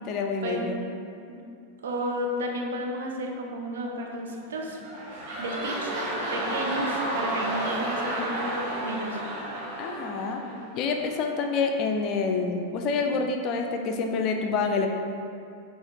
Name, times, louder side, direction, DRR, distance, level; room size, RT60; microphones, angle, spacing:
voice 1, 0.1-0.8 9.8-10.4 10.7-14.9, left 4 dB, 40° left, 3 dB, 0.4 m, -27 dB
voice 2, 1.8-4.8 5.4-5.9 6.3-9.2, right 1 dB, 65° right, 1 dB, 0.5 m, -32 dB
sound 1, 4.5-11.0 11.6-11.7, right 1 dB, 45° right, 1.0 m, -32 dB
5.5 x 3.0 x 3.0 m, 2.4 s
figure-of-eight pair, 90°, 0 cm